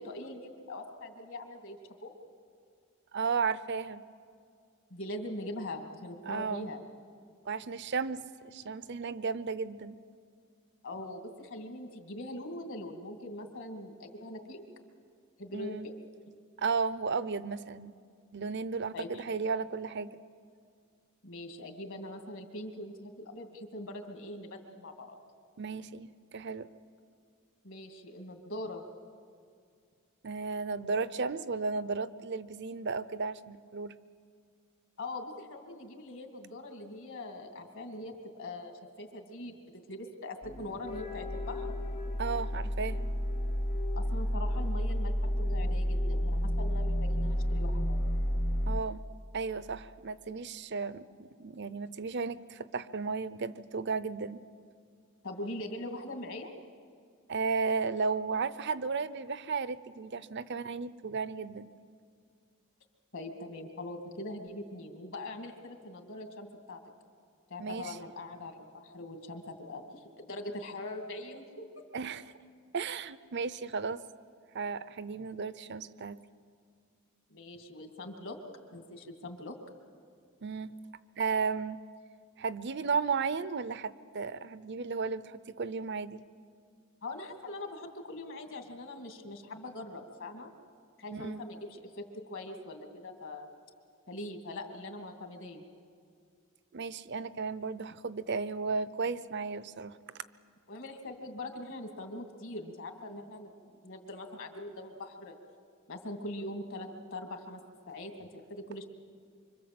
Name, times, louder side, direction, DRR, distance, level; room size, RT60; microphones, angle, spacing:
voice 1, 0.0-2.1 4.9-6.8 10.8-14.6 15.4-16.0 18.9-19.4 21.2-25.2 27.6-28.8 35.0-39.6 39.9-41.8 43.9-48.0 55.2-56.5 63.1-66.8 67.5-71.7 77.3-78.4 78.7-79.6 87.0-90.5 91.0-93.5 94.1-95.6 100.7-105.4 105.9-108.8, left 1 dB, 60° left, 5 dB, 2.4 m, -42 dB
voice 2, 3.1-4.0 6.2-6.7 7.4-8.2 8.5-10.0 15.5-15.9 16.6-17.9 18.3-20.1 25.6-26.7 30.2-34.0 42.2-43.1 48.7-49.0 49.3-54.4 57.3-61.7 67.6-68.0 71.9-72.2 72.7-74.0 74.5-76.2 80.4-80.7 81.2-81.8 82.4-86.2 91.1-91.4 96.7-100.0, right 5 dB, 55° right, 15 dB, 0.7 m, -34 dB
sound 1, 40.4-48.8, equal, 30° left, 1.0 m, -31 dB
25.5 x 25.0 x 7.8 m, 2.2 s
head